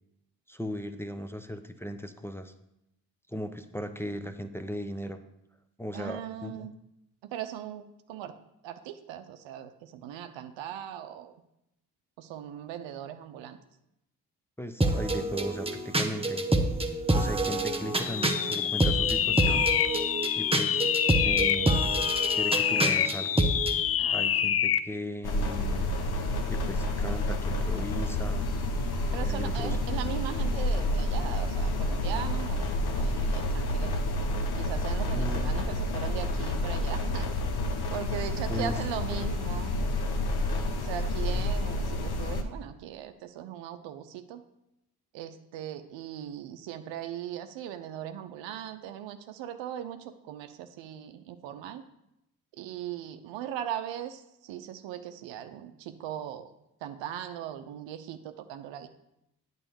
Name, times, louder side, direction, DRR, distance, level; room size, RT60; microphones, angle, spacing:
voice 1, 0.5-2.5 3.3-5.2 5.8-6.7 14.6-16.4 17.1-19.7 20.4-20.9 21.2-21.9 22.3-23.3 24.1-26.0 26.5-28.5 29.2-29.8 35.1-35.6 38.5-38.7, equal, 5° left, 7 dB, 0.7 m, -37 dB
voice 2, 5.9-6.7 7.2-8.4 8.6-11.4 12.2-13.6 24.0-24.6 29.1-34.0 34.5-37.3 37.9-39.8 40.8-44.4 45.1-51.8 52.5-56.5 56.8-58.9, right 10 dB, 75° right, 9 dB, 0.7 m, -39 dB
sound 1, 14.8-23.8, right 2 dB, 10° right, 1.0 m, -27 dB
sound 2, 18.0-24.9, left 10 dB, 35° left, 0.4 m, -27 dB
sound 3, 25.2-42.4, left 1 dB, 55° left, 1.1 m, -29 dB
8.9 x 4.0 x 7.0 m, 0.83 s
hypercardioid pair, 40°, 46 cm